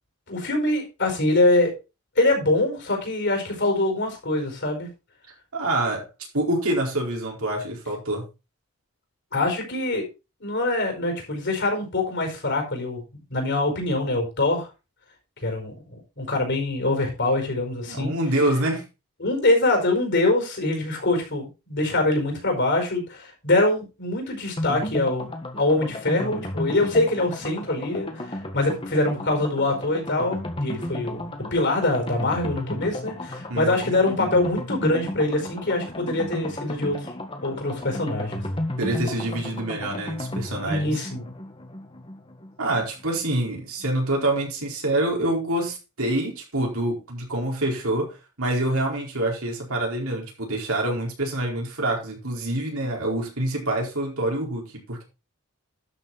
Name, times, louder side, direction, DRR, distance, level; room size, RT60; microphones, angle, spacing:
voice 1, 0.3-1.7 2.2-4.9 9.3-10.0 10.4-13.0 13.3-14.7 15.4-18.1 19.2-25.3 25.6-28.2 28.5-37.1 37.4-38.4 40.7-41.2, left 2 dB, 55° left, 3 dB, 4.9 m, -24 dB
voice 2, 5.5-6.1 6.3-8.2 17.9-18.8 33.5-33.9 38.8-40.9 42.6-55.0, right 1 dB, 70° right, -1 dB, 4.5 m, -26 dB
sound 1, 24.6-43.2 43.5-43.6 43.8-43.9, left 1 dB, 25° left, 1.6 m, -33 dB
12.0 x 6.9 x 4.1 m, 0.29 s
head